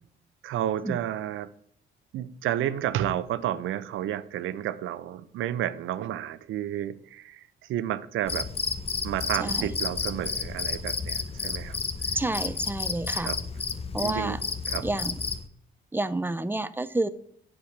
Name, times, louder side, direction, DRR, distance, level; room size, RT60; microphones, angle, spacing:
voice 1, 0.4-1.5 2.1-8.5 9.0-12.1 13.2-13.4 14.0-14.9, right 11 dB, 85° right, 14 dB, 0.7 m, -31 dB
Cricket, 8.3-15.5, left 4 dB, 30° left, 0.9 m, -31 dB
voice 2, 9.4-9.7 12.1-13.3 13.9-14.4 14.8-15.2 15.9-17.1, right 2 dB, 10° right, 13 dB, 0.7 m, -29 dB
8.6 x 7.6 x 6.7 m, 0.69 s
cardioid pair, 90°, 20 cm